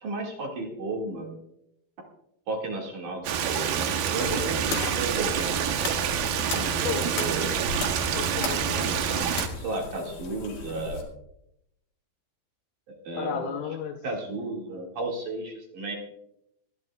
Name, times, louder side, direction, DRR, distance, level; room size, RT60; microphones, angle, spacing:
voice 1, 0.0-1.4 2.5-5.6 6.5-7.6 8.7-8.9 9.6-11.0 13.0-13.5 14.0-16.0, right 2 dB, 50° right, -1 dB, 3.0 m, -33 dB
Stream, 3.2-9.5, right 8 dB, 75° right, 2.2 m, -27 dB
sound 1, 4.2-11.0, left 4 dB, 65° left, 4.2 m, -37 dB
voice 2, 6.3-7.3 8.1-9.3 13.2-14.0, left 8 dB, 80° left, 3 dB, 3.2 m, -35 dB
25.5 x 11.0 x 2.4 m, 0.80 s
omnidirectional pair, 5.5 m